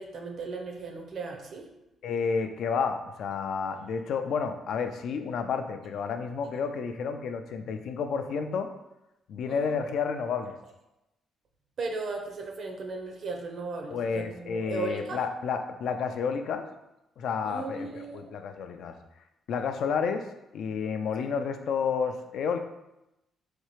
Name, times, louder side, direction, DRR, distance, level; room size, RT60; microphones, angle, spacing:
voice 1, 0.0-1.7 9.5-9.8 11.8-15.2 17.4-18.3, right 3 dB, 60° right, 2 dB, 0.6 m, -36 dB
voice 2, 2.0-8.7 9.3-10.5 13.9-16.7 17.2-18.9 19.5-20.2 20.5-22.6, left 6 dB, 70° left, 7 dB, 0.3 m, -30 dB
4.2 x 2.4 x 3.1 m, 0.91 s
cardioid pair, 90°, 0 cm